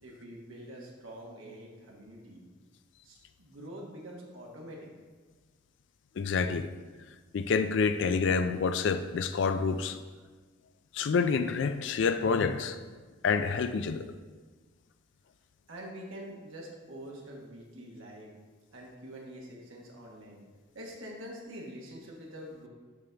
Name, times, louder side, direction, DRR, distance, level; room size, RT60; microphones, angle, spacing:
voice 1, 0.0-2.5 3.0-4.9 15.7-18.3 18.7-20.4 20.7-22.7, equal, 80° right, -2 dB, 1.2 m, -45 dB
voice 2, 6.2-6.7 7.3-10.0 10.9-12.8 13.2-14.1, left 5 dB, 65° left, 10 dB, 0.3 m, -28 dB
7.1 x 5.3 x 3.4 m, 1.4 s
head